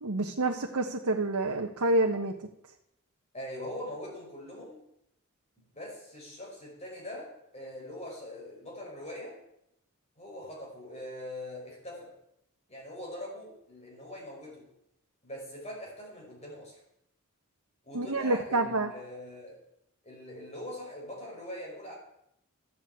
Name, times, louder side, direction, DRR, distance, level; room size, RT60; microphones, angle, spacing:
voice 1, 0.0-2.3 17.9-18.9, right 2 dB, 85° right, 2 dB, 1.2 m, -28 dB
voice 2, 3.3-4.8 5.7-9.4 10.2-12.1 12.7-14.7 15.2-16.8 17.8-19.6 20.0-21.9, left 1 dB, 30° left, -2 dB, 5.7 m, -42 dB
13.0 x 8.6 x 8.7 m, 0.80 s
head